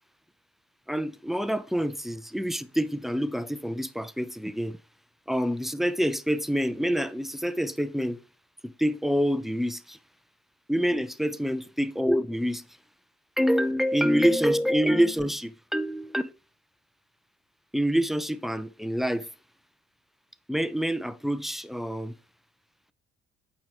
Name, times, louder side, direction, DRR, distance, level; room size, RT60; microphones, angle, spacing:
voice 1, 0.9-4.8 5.3-8.2 8.6-10.0 10.7-12.6 13.4-16.3 17.7-19.3 20.5-22.1, equal, ahead, 0.5 m, -26 dB
8.6 x 4.8 x 2.8 m
figure-of-eight pair, 45°, 36 cm